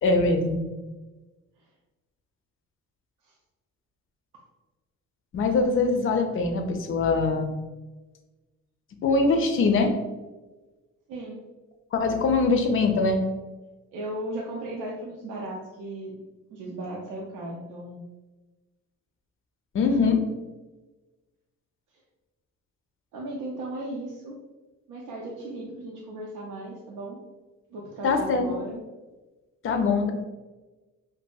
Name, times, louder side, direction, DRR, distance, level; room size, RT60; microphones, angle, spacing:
voice 1, 0.0-0.6 5.3-7.5 9.0-9.9 11.9-13.2 19.7-20.2 28.0-28.8 29.6-30.1, left 3 dB, 45° left, 5 dB, 0.4 m, -23 dB
voice 2, 11.1-11.4 13.9-16.1 16.5-18.0 23.1-24.4 24.9-27.2 27.7-28.7, right 1 dB, 85° right, -3 dB, 0.5 m, -36 dB
2.7 x 2.6 x 2.2 m, 1.2 s
cardioid pair, 90°, 30 cm